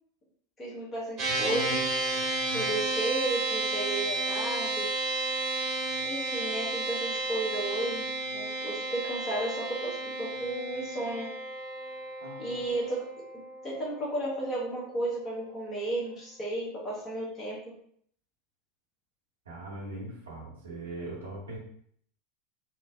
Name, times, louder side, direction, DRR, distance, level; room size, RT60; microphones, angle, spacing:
voice 1, 0.6-1.8 2.5-4.9 6.0-8.1 8.3-11.3 12.4-13.1 13.6-17.6, right 1 dB, 25° left, -6 dB, 0.9 m, -33 dB
sound 1, 1.2-14.7, right 2 dB, 45° right, 1.0 m, -32 dB
voice 2, 12.2-12.6 19.4-21.6, right 1 dB, 75° right, -5 dB, 1.0 m, -40 dB
3.1 x 2.0 x 2.3 m, 0.63 s
figure-of-eight pair, 80°, 0 cm